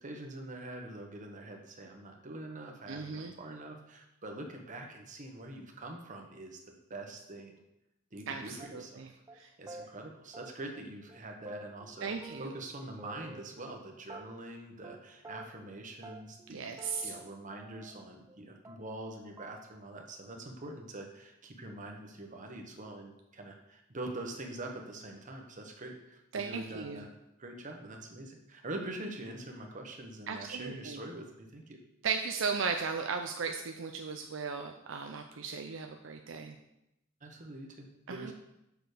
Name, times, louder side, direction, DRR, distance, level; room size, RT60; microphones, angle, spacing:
voice 1, 0.0-7.6 8.1-9.1 9.3-12.1 12.4-27.1 27.4-31.8 37.2-38.3, right 2 dB, 40° right, 2 dB, 1.2 m, -44 dB
voice 2, 2.9-3.3 8.3-9.1 9.4-9.5 12.0-12.5 16.5-17.2 26.3-27.1 30.3-31.0 32.0-36.6 38.1-38.3, right 5 dB, 70° right, 4 dB, 0.6 m, -36 dB
sound 1, 8.6-9.0 9.3-9.4 9.7-9.9 10.3-10.8 11.1-11.2 11.5-12.7 13.0-13.8 14.1-14.6 14.8-15.0 15.2-15.7 16.0-16.5 16.8-18.4 18.7-19.1 19.4-19.6, right 1 dB, 15° right, 0.4 m, -49 dB
6.9 x 6.1 x 5.0 m, 0.86 s
head